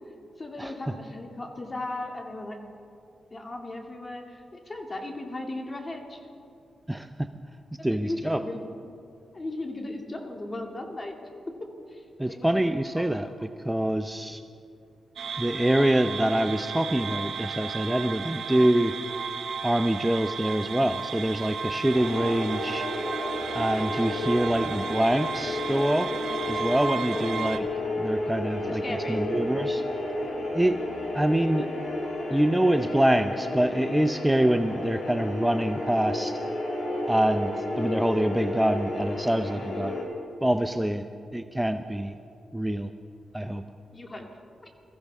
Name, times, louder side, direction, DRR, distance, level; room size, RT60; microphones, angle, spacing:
voice 1, 0.4-2.6 3.3-6.2 8.0-8.7 9.3-11.1 11.9-12.5 12.9-13.3 27.1-27.7 28.6-29.3 43.9-44.3, left 2 dB, 30° left, 2 dB, 2.4 m, -37 dB
voice 2, 6.9-7.3 7.8-8.4 12.2-14.4 15.4-18.9 19.6-22.8 23.5-26.1 26.5-27.7 28.0-28.8 29.1-29.8 30.5-30.8 31.1-31.7 32.3-36.3 37.1-40.0 40.4-41.0 41.3-42.1 42.5-42.9 43.3-43.6, right 1 dB, 10° right, 8 dB, 0.6 m, -25 dB
sound 1, 15.2-27.6, right 5 dB, 75° right, 0.8 m, -34 dB
sound 2, 21.9-40.0, left 1 dB, 70° left, 3.5 m, -32 dB
22.0 x 15.0 x 3.6 m, 2.5 s
cardioid pair, 55°, 0 cm